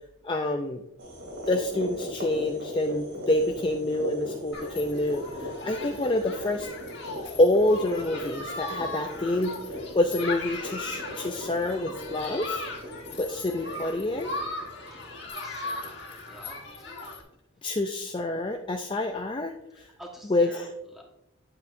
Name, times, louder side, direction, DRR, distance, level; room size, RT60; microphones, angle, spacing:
voice 1, 0.2-0.8 1.5-6.7 7.4-9.5 9.9-12.6 13.2-14.3 17.6-19.9 20.3-20.7, left 1 dB, 25° left, 4 dB, 0.4 m, -27 dB
sound 1, 1.0-15.2, equal, 85° right, 3.1 m, -39 dB
Human group actions, 4.5-17.2, left 3 dB, 60° left, 1.6 m, -38 dB
voice 2, 15.1-17.0 19.7-21.0, equal, ahead, 0 dB, 1.3 m, -49 dB
8.9 x 8.2 x 2.6 m, 0.84 s
head